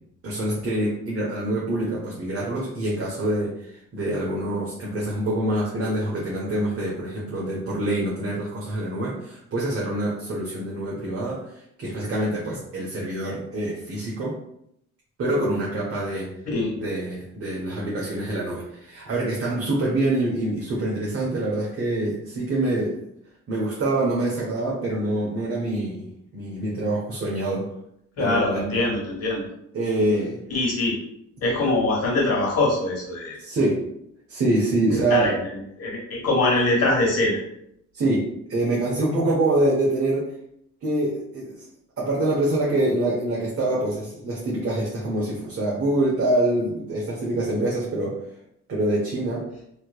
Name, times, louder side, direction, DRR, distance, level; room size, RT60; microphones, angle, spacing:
voice 1, 0.2-14.4 15.2-16.3 16.7-22.9 23.5-26.1 26.3-27.7 28.2-28.7 29.7-30.4 33.4-33.8 34.3-35.3 37.9-40.2 40.8-41.7 42.0-48.2 48.7-49.4, right 1 dB, 45° right, -5 dB, 1.0 m, -25 dB
voice 2, 28.2-29.4 30.5-30.9 31.4-33.4 35.1-35.4 35.8-37.4, left 2 dB, 55° left, -2 dB, 1.5 m, -23 dB
3.2 x 2.9 x 2.4 m, 0.75 s
cardioid pair, 90°, 30 cm